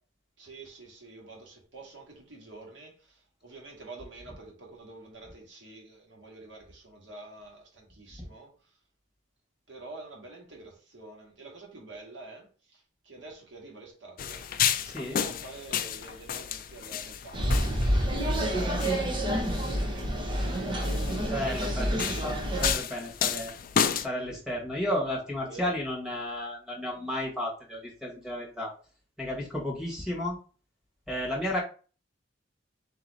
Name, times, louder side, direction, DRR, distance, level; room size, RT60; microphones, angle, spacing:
voice 1, 0.4-8.8 9.7-14.5 15.0-19.2 19.6-21.2 25.4-25.8, right 2 dB, 80° right, 1.7 m, -47 dB
sound 1, 14.2-24.1, left 8 dB, 50° left, 0.4 m, -32 dB
voice 2, 14.8-15.2 21.2-23.5 24.0-28.7 29.2-30.4 31.1-31.6, left 1 dB, 5° right, 1.5 m, -33 dB
sound 2, 17.3-22.7, equal, 25° right, 0.9 m, -28 dB
4.1 x 2.9 x 4.0 m
head